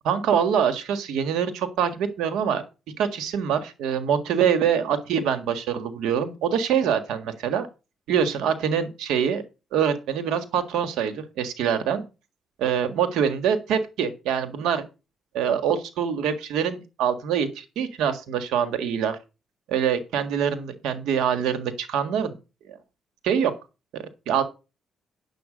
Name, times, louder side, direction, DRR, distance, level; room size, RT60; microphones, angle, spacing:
voice 1, 0.0-2.6 3.0-7.7 8.1-9.4 9.7-12.0 12.6-14.8 15.3-19.2 19.7-22.4 22.7-22.8 23.2-23.5 23.9-24.4, right 8 dB, 85° right, 10 dB, 1.7 m, -24 dB
9.2 x 7.5 x 5.1 m, 0.29 s
cardioid pair, 90°, 0 cm